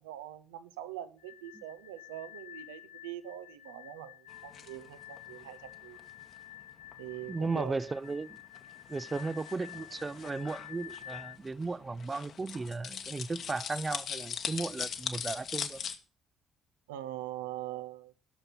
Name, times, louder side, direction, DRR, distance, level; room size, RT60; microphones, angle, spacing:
voice 1, 0.0-6.0 7.0-7.8 16.9-18.1, right 12 dB, 75° right, 0.8 m, -43 dB
sound 1, 1.2-11.4, left 13 dB, 70° left, 0.6 m, -50 dB
sound 2, 4.3-16.0, left 7 dB, 50° left, 1.3 m, -42 dB
voice 2, 7.3-8.4 8.9-15.8, right 3 dB, 25° right, 0.5 m, -35 dB
16.0 x 6.7 x 5.8 m
figure-of-eight pair, 45°, 0 cm